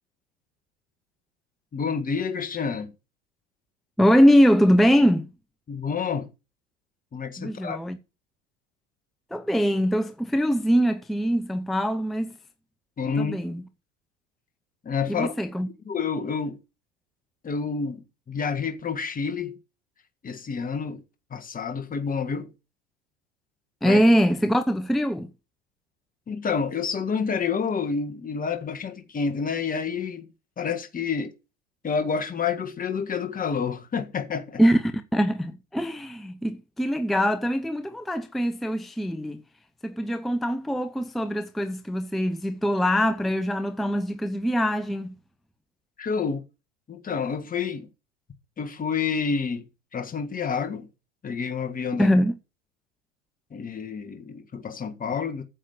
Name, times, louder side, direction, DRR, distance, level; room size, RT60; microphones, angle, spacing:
voice 1, 1.7-2.9 5.7-6.3 7.1-7.8 13.0-13.4 14.8-15.3 15.8-16.6 17.4-19.6 20.2-21.0 21.3-22.5 23.8-24.0 26.3-30.3 30.6-31.3 31.8-34.6 46.0-46.4 46.9-47.9 48.6-49.6 49.9-50.9 51.2-52.1 53.5-55.4, left 5 dB, 20° left, 1.7 m, -29 dB
voice 2, 4.0-5.3 7.4-8.0 9.3-12.3 13.2-13.6 15.1-15.7 23.8-25.3 34.6-34.8 35.1-39.4 39.8-45.1 52.0-52.3, equal, ahead, 0.8 m, -22 dB
10.0 x 7.4 x 6.7 m
hypercardioid pair, 100°, 40 cm